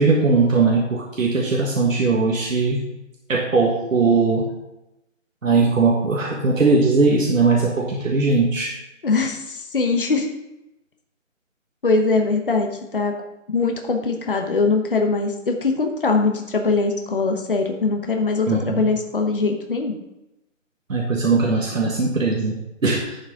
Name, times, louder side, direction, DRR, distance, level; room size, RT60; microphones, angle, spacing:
voice 1, 0.0-2.9 3.3-4.5 5.4-8.7 18.5-18.9 20.9-23.2, right 3 dB, 85° right, -1 dB, 1.6 m, -19 dB
voice 2, 9.0-10.3 11.8-13.1 13.5-19.9, left 3 dB, 45° left, 3 dB, 1.0 m, -22 dB
10.5 x 6.3 x 3.7 m, 0.93 s
hypercardioid pair, 180°, 38 cm